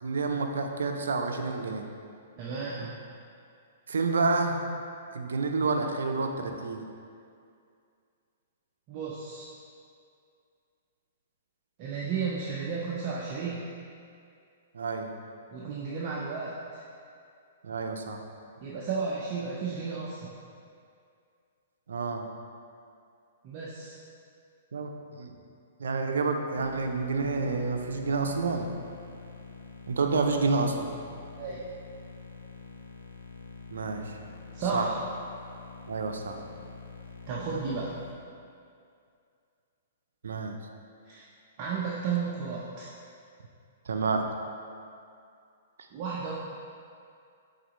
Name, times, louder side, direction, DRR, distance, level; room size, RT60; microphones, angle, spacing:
voice 1, 0.0-1.9 3.9-4.6 5.1-6.8 14.7-15.1 17.6-18.2 21.9-22.2 24.7-25.3 25.8-28.7 29.9-30.9 33.7-34.2 34.7-34.9 35.9-36.4 40.2-40.6 43.9-44.3, right 4 dB, 85° right, 4 dB, 0.6 m, -29 dB
voice 2, 2.4-2.9 8.9-9.4 11.8-13.6 15.5-16.8 18.6-20.2 23.4-24.0 31.4-31.6 34.5-35.0 37.3-37.9 41.0-41.2 41.6-42.9 45.9-46.3, right 5 dB, 40° right, -6 dB, 0.8 m, -33 dB
sound 1, 26.6-38.1, left 5 dB, 90° left, 0.8 m, -46 dB
8.6 x 4.0 x 3.1 m, 2.4 s
hypercardioid pair, 130°, 0 cm